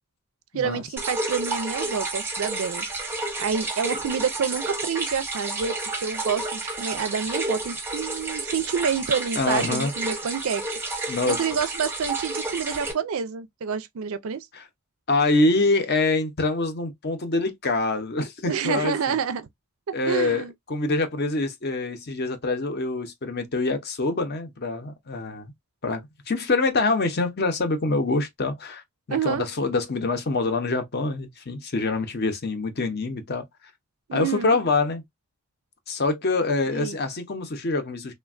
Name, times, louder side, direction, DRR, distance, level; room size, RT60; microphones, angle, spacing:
voice 1, 0.5-3.1 3.4-5.8 6.0-10.6 10.9-14.5 18.4-19.5 19.9-20.5 29.1-29.5 34.1-34.6 36.7-37.0, right 6 dB, 70° right, 0.4 m, -28 dB
sound 1, 1.0-12.9, right 2 dB, 10° right, 0.6 m, -30 dB
voice 2, 9.4-9.9 11.1-11.4 14.5-14.6 15.1-19.2 19.9-25.5 25.8-28.8 29.1-33.4 34.1-35.0 35.9-38.1, left 3 dB, 45° left, 0.6 m, -25 dB
3.2 x 2.2 x 2.3 m
head